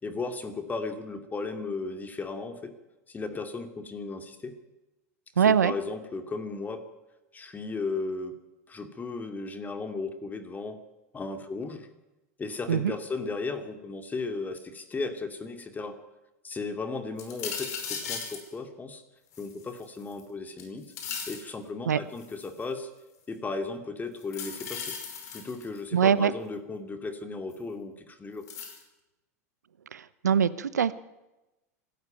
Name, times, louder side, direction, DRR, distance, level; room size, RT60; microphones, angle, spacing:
voice 1, 0.0-2.7 3.1-4.6 5.4-6.8 7.3-8.4 8.7-10.8 11.1-11.9 12.4-16.0 16.4-19.0 19.4-20.9 21.3-22.9 23.3-25.0 25.3-28.4, left 3 dB, 20° left, 8 dB, 2.5 m, -35 dB
voice 2, 5.4-5.7 12.7-12.9 21.9-22.0 25.9-26.3 29.9-30.9, right 8 dB, 85° right, 16 dB, 0.8 m, -23 dB
sound 1, 17.2-18.5 19.3-20.2 20.6-21.5 22.2-22.6 24.2-25.8 27.5-27.6 28.5-28.8, left 6 dB, 70° left, 5.4 m, -37 dB
25.5 x 13.5 x 9.1 m, 1.0 s
hypercardioid pair, 95°, 9 cm